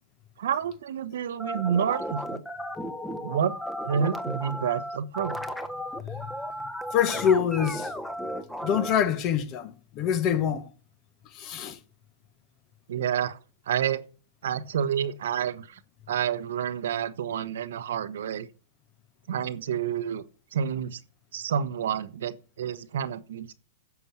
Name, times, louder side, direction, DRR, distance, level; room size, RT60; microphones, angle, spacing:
voice 1, 0.4-2.4 3.2-3.5 3.8-5.4 12.9-13.4 13.7-14.0 14.4-15.8 16.1-18.5 19.3-20.2 20.5-21.0 21.3-23.5, right 8 dB, 75° right, 1.0 m, -29 dB
sound 1, 1.4-9.0, equal, 5° left, 1.2 m, -35 dB
voice 2, 6.9-7.9 8.6-10.7 11.3-11.8, left 8 dB, 40° left, 1.5 m, -25 dB
10.5 x 7.0 x 7.1 m
hypercardioid pair, 120°, 0 cm